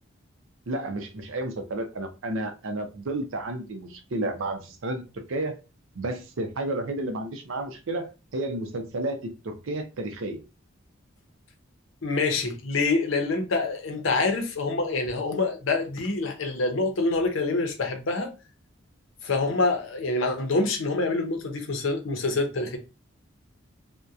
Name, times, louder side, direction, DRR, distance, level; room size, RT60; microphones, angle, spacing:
voice 1, 0.7-5.6 5.9-10.4, right 2 dB, 75° right, 0.5 m, -32 dB
voice 2, 12.0-18.3 19.2-22.8, left 3 dB, 70° left, 0.6 m, -26 dB
2.7 x 2.1 x 2.3 m
head